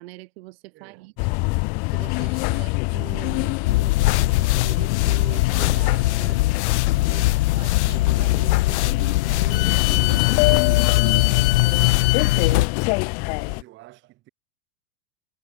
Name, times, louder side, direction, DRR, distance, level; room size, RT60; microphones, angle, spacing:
voice 1, 0.0-1.3 1.8-6.7 7.1-11.3, right 21 dB, 60° right, 1.7 m, -42 dB
voice 2, 0.7-1.1 2.4-2.7 7.1-7.4 13.2-14.3, right 18 dB, 35° right, 3.0 m, -51 dB
sound 1, 1.2-13.6, left 34 dB, 25° left, 0.3 m, -25 dB
sound 2, 3.7-12.7, left 18 dB, 75° left, 0.8 m, -21 dB
supercardioid pair, 160°, 34 cm